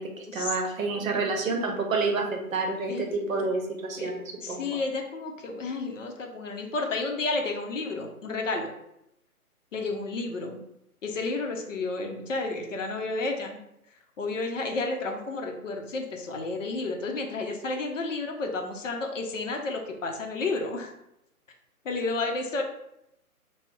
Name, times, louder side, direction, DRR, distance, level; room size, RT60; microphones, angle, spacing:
voice 1, 0.0-4.7, right 3 dB, 60° right, 3 dB, 0.7 m, -29 dB
voice 2, 4.4-8.7 9.7-10.6 11.0-13.6 14.2-20.9 21.8-22.6, left 3 dB, 55° left, 3 dB, 0.6 m, -31 dB
2.4 x 2.0 x 3.6 m, 0.82 s
hypercardioid pair, 150°, 45 cm